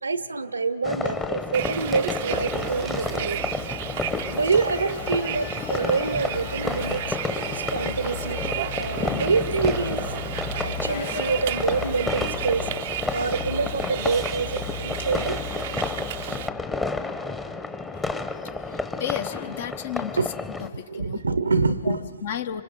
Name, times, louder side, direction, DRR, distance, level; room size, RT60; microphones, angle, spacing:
voice 1, 0.0-3.6 4.3-7.0 7.5-8.4 8.7-10.1 10.6-12.7 13.0-15.5 20.2-20.3 20.9-22.2, right 4 dB, 85° right, 0.7 m, -26 dB
sound 1, 0.8-20.7, left 3 dB, 10° left, 0.9 m, -31 dB
Bus, 1.5-16.5, right 13 dB, 50° right, 0.5 m, -34 dB
sound 2, 2.3-16.4, left 4 dB, 80° left, 3.2 m, -37 dB
voice 2, 18.7-20.2 20.9-21.2 21.9-22.0 22.2-22.6, left 9 dB, 60° left, 0.9 m, -32 dB
30.0 x 26.0 x 5.4 m
figure-of-eight pair, 115°, 0 cm